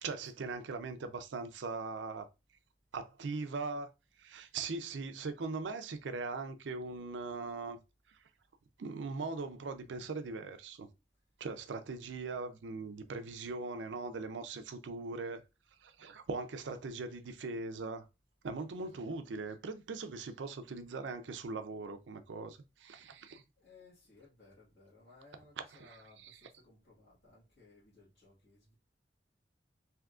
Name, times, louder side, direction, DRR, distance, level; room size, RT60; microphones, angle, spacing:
voice 1, 0.0-2.3 2.9-3.9 4.2-7.8 8.1-8.2 8.8-10.9 11.4-15.4 15.8-18.1 18.4-23.4 25.8-26.0 26.2-26.3, right 3 dB, 85° right, 0.5 m, -40 dB
voice 2, 18.5-19.1 23.6-28.7, left 3 dB, 90° left, 1.6 m, -61 dB
3.5 x 2.8 x 2.4 m
head